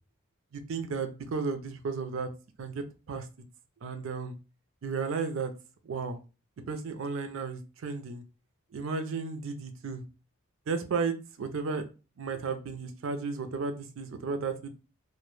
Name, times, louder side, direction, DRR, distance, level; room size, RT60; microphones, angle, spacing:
voice 1, 0.5-2.3 2.6-3.3 3.8-4.3 4.8-5.5 5.9-6.2 6.7-8.2 8.7-10.0 10.7-11.8 12.2-14.7, right 4 dB, 60° right, 8 dB, 0.4 m, -33 dB
2.1 x 2.1 x 3.0 m, 0.32 s
head